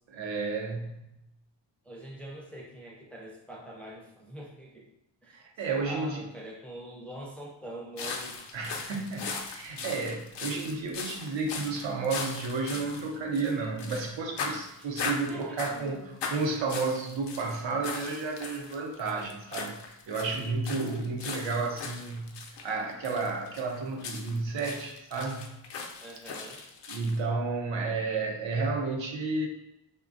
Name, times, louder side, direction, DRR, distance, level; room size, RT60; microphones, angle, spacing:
voice 1, 0.1-1.2 5.3-6.3 8.5-19.7 20.1-22.3 22.6-25.5 26.9-29.5, right 3 dB, 85° right, 1 dB, 0.6 m, -32 dB
voice 2, 1.8-4.9 5.2-8.4 14.8-14.9 15.3-16.1 26.0-26.6, right 1 dB, 5° left, -2 dB, 0.4 m, -44 dB
sound 1, 8.0-14.1 14.4-15.9 16.2-27.2, left 4 dB, 70° left, 0.5 m, -38 dB
3.2 x 2.1 x 2.4 m, 0.86 s
wide cardioid pair, 95°, 44 cm